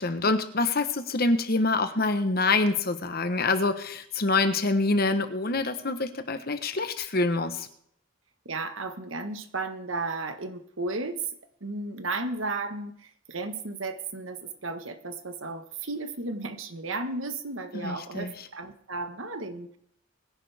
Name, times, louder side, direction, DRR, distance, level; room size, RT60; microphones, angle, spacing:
voice 1, 0.0-7.7 17.8-18.3, left 3 dB, 45° left, 9 dB, 1.1 m, -26 dB
voice 2, 8.4-11.2 11.6-19.8, right 3 dB, 70° right, 8 dB, 1.4 m, -34 dB
22.0 x 10.5 x 3.5 m, 0.67 s
head